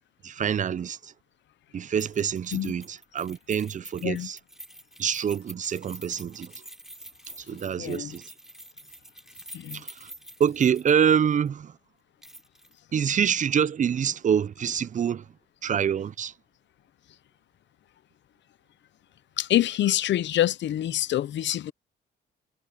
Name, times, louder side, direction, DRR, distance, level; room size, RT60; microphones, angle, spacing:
voice 1, 0.2-1.1 1.7-4.4 5.0-6.5 7.5-8.3 9.7-10.1 10.4-11.7 12.9-15.3 15.6-16.3, right 8 dB, 40° right, 0.6 m, -26 dB
Keys jangling, 2.0-11.1 11.5-11.6 12.2-12.7 13.0-13.1, equal, ahead, 4.4 m, -47 dB
voice 2, 7.8-8.1 9.5-9.8 19.4-21.7, left 12 dB, 65° left, 0.8 m, -26 dB
cardioid pair, 90°, 20 cm